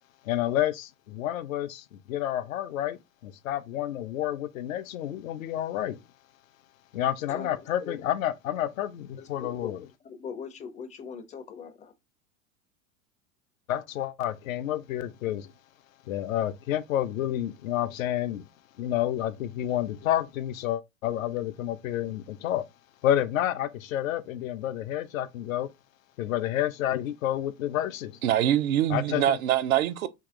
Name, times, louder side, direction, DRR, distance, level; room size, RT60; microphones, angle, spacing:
voice 1, 0.2-6.0 6.9-9.8 13.7-15.5 16.1-18.5 18.8-22.6 23.0-25.7 26.2-28.2 28.9-29.4, left 12 dB, 70° left, 0.5 m, -29 dB
voice 2, 9.1-11.9, left 6 dB, 20° left, 0.4 m, -41 dB
voice 3, 28.2-30.1, right 11 dB, 75° right, 0.5 m, -24 dB
2.9 x 2.8 x 3.4 m
figure-of-eight pair, 85°, 42 cm